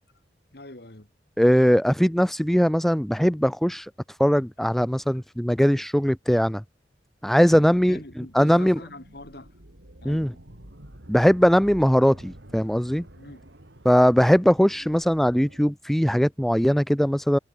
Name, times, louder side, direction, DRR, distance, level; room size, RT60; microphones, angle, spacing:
voice 1, 0.5-1.1 7.6-9.5 10.0-10.4 13.1-13.5, left 1 dB, 60° left, 2.7 m, -44 dB
voice 2, 1.4-3.9 4.2-6.6 7.2-8.8 10.0-10.3 11.1-13.0 13.9-17.4, equal, ahead, 0.3 m, -20 dB
sound 1, 7.9-15.7, right 1 dB, 85° right, 4.2 m, -49 dB
head